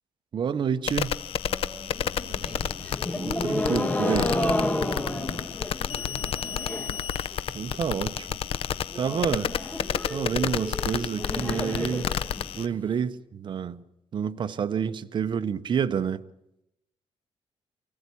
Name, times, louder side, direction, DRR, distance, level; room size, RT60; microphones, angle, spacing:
voice 1, 0.3-1.2 3.1-4.3 7.5-8.4 8.9-9.5 10.1-12.1 12.5-13.8 14.1-16.2, right 7 dB, 50° right, 0.9 m, -28 dB
sound 1, 0.9-12.7, left 9 dB, 65° left, 0.8 m, -31 dB
voice 2, 1.4-2.8 5.2-5.7 6.4-7.1, equal, 5° right, 7.3 m, -46 dB
sound 2, 2.0-7.0 7.3-7.9 8.2-8.3 8.5-8.6 8.9-12.9, left 1 dB, 15° left, 1.5 m, -31 dB
24.0 x 15.5 x 8.5 m
cardioid pair, 120°, 10 cm